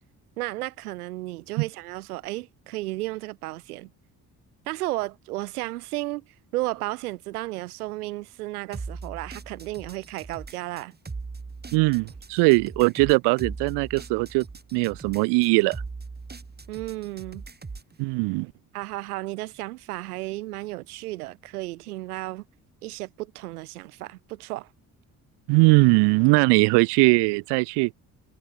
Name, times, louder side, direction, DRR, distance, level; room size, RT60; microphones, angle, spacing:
voice 1, 0.4-3.9 4.7-6.2 6.5-10.9 16.7-17.4 18.7-22.4 22.8-24.7, right 19 dB, 80° right, 1.7 m, -33 dB
sound 1, 8.7-17.9, right 4 dB, 20° right, 2.2 m, -40 dB
voice 2, 11.7-14.4 14.7-15.8 18.0-18.5 25.5-27.9, right 29 dB, 65° right, 0.6 m, -20 dB
hypercardioid pair, 45°, 44 cm